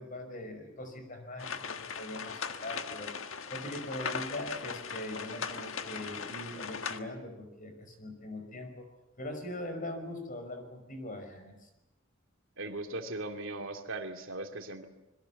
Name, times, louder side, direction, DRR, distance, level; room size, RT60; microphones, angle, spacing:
voice 1, 0.0-3.1 3.4-8.9 9.2-11.7, left 1 dB, 40° left, 7 dB, 5.5 m, -41 dB
sound 1, 1.4-7.0, left 6 dB, 80° left, 1.5 m, -39 dB
voice 2, 12.6-14.9, right 2 dB, 75° right, 4 dB, 2.7 m, -38 dB
26.0 x 22.5 x 7.3 m, 0.95 s
head